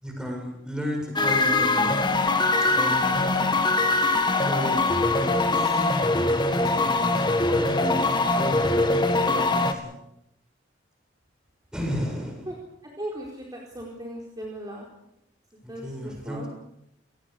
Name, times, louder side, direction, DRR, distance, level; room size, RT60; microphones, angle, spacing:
voice 1, 0.0-1.9 2.7-3.3 4.4-4.8 5.1-10.0 11.7-12.5 15.6-16.5, equal, 5° right, 2 dB, 7.2 m, -34 dB
sound 1, 1.2-9.7, left 2 dB, 25° left, 2.1 m, -22 dB
voice 2, 13.0-14.9 15.7-16.5, right 1 dB, 20° right, -2 dB, 4.4 m, -37 dB
29.0 x 18.5 x 6.8 m, 0.79 s
head